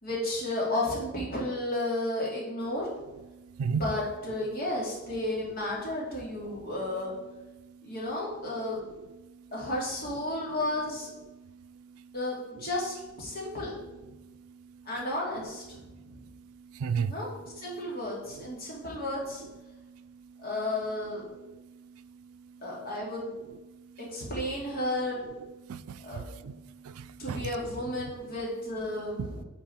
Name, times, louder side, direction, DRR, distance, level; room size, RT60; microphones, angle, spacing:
voice 1, 0.0-2.9 3.6-7.1 7.8-8.8 9.5-11.1 12.1-13.8 14.9-16.2 17.1-19.4 20.4-21.2 22.6-23.3 24.1-25.2 26.0-26.2 27.2-29.4, left 1 dB, 45° left, -4 dB, 2.5 m, -33 dB
voice 2, 16.7-17.1 25.7-26.6 26.8-27.4, right 6 dB, 90° right, 14 dB, 0.4 m, -32 dB
9.1 x 4.6 x 4.3 m, 1.1 s
head